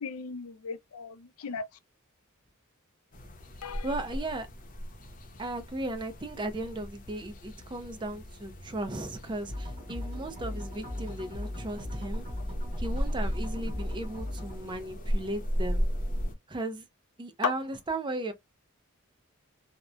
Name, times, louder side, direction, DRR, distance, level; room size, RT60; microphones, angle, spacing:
voice 1, 0.0-1.6 3.6-3.9 17.4-17.5, left 6 dB, 90° left, 0.5 m, -35 dB
sound 1, 3.1-16.3, equal, 40° left, 0.6 m, -36 dB
voice 2, 3.8-4.5 5.4-12.2 12.8-15.8 16.5-16.8 17.2-18.3, right 2 dB, 20° right, 0.5 m, -36 dB
sound 2, 9.5-14.6, left 1 dB, 50° right, 1.3 m, -38 dB
2.9 x 2.1 x 2.3 m
head